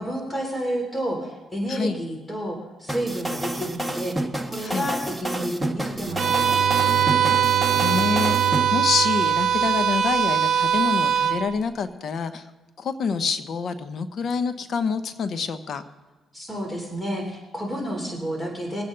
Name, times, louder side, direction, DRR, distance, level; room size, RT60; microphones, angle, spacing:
voice 1, 0.0-7.2 16.3-18.8, equal, 15° left, 1 dB, 3.4 m, -30 dB
voice 2, 1.7-2.0 4.6-4.9 7.7-12.4 12.8-15.8, left 5 dB, 60° left, 11 dB, 0.9 m, -27 dB
sound 1, 2.9-8.6, right 1 dB, 5° right, 1.3 m, -29 dB
Bowed string instrument, 5.9-10.4, right 15 dB, 85° right, 0.4 m, -31 dB
Bowed string instrument 2, 6.2-11.5, right 9 dB, 55° right, 0.9 m, -21 dB
22.5 x 8.8 x 3.9 m, 1.3 s
cardioid pair, 90°, 0 cm